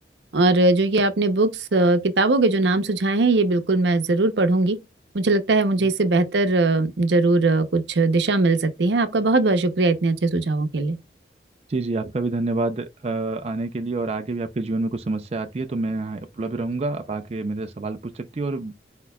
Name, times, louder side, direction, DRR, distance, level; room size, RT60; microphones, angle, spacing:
voice 1, 0.3-4.8 5.1-11.0, right 2 dB, 75° right, 0.7 m, -20 dB
voice 2, 11.7-18.7, right 2 dB, 35° right, 0.4 m, -27 dB
4.5 x 4.3 x 2.2 m
head